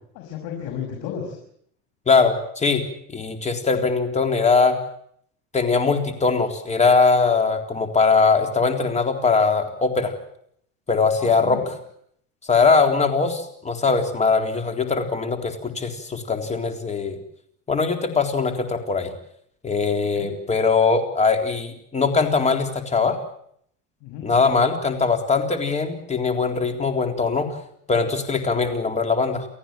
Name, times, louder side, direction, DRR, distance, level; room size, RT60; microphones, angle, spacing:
voice 1, 0.1-1.4 11.2-11.6 20.1-20.3 24.0-24.3, left 8 dB, 65° left, 2 dB, 6.2 m, -33 dB
voice 2, 2.1-2.8 3.1-4.8 5.5-10.1 10.9-11.6 12.5-17.2 17.7-19.1 19.6-23.2 24.2-27.6 27.9-29.5, left 4 dB, 20° left, 6 dB, 3.7 m, -21 dB
30.0 x 14.5 x 9.0 m, 0.69 s
cardioid pair, 130°, 36 cm